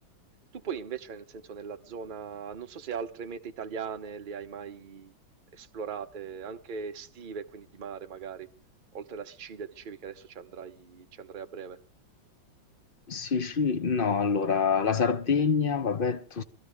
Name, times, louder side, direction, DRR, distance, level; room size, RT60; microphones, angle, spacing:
voice 1, 0.5-5.1 5.5-8.5 8.9-11.8, right 6 dB, 40° right, 0.7 m, -39 dB
voice 2, 13.1-16.4, left 5 dB, 40° left, 0.8 m, -26 dB
22.5 x 14.5 x 3.5 m
omnidirectional pair, 2.1 m